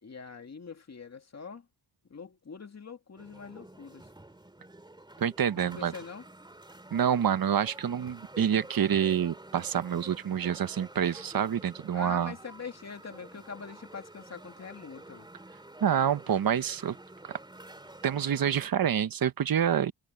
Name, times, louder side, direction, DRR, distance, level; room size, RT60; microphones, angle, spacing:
voice 1, 0.0-1.7 2.1-4.1 5.6-6.3 11.9-15.3, left 5 dB, 40° left, 2.4 m, -44 dB
sound 1, 3.2-18.7, right 2 dB, 10° right, 2.7 m, -50 dB
voice 2, 5.2-5.9 6.9-12.3 15.8-16.9 18.0-19.9, right 8 dB, 55° right, 1.1 m, -27 dB
cardioid pair, 105°, 42 cm